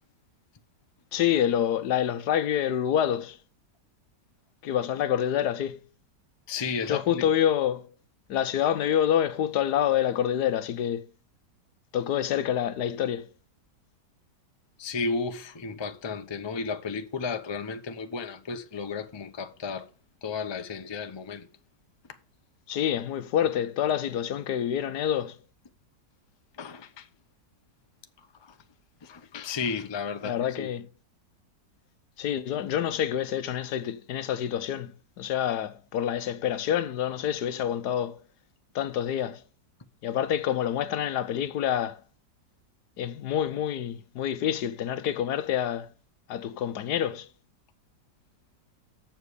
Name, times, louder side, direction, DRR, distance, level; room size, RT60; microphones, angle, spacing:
voice 1, 1.1-3.4 4.6-5.8 6.9-7.9 8.3-11.1 11.9-13.3 22.7-25.4 30.2-30.9 32.2-38.2 38.7-39.4 40.0-42.0 43.0-45.9 46.3-47.3, left 10 dB, 70° left, 1.2 m, -27 dB
voice 2, 6.5-7.2 14.8-19.9 20.2-21.5 26.6-27.0 28.5-28.6 29.0-30.7, left 4 dB, 25° left, 0.5 m, -33 dB
7.4 x 7.0 x 8.1 m
omnidirectional pair, 1.9 m